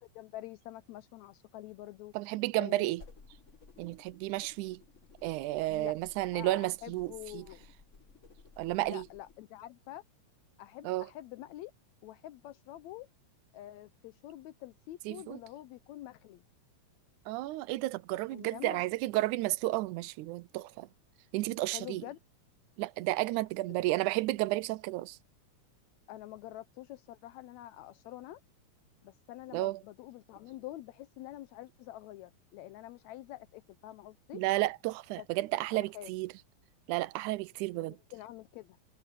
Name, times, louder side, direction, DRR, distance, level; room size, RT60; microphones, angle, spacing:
voice 1, 0.0-2.1 2.6-2.9 5.7-5.9 6.3-7.6 8.8-10.0 10.6-11.7 12.0-13.1 13.5-16.4 18.3-18.8 21.7-22.2 26.1-28.4 29.0-34.4 35.2-35.3 35.9-36.1 37.7-38.8, left 14 dB, 80° left, 1.8 m, -46 dB
voice 2, 2.1-3.0 3.8-4.8 5.2-7.5 8.6-9.1 10.8-11.1 15.1-15.4 17.3-20.9 21.3-22.0 22.8-25.2 29.5-29.8 34.3-36.3 36.9-38.0, right 18 dB, 90° right, 2.1 m, -32 dB
sound 1, 2.9-9.4, left 4 dB, 40° left, 1.2 m, -57 dB
omnidirectional pair, 3.4 m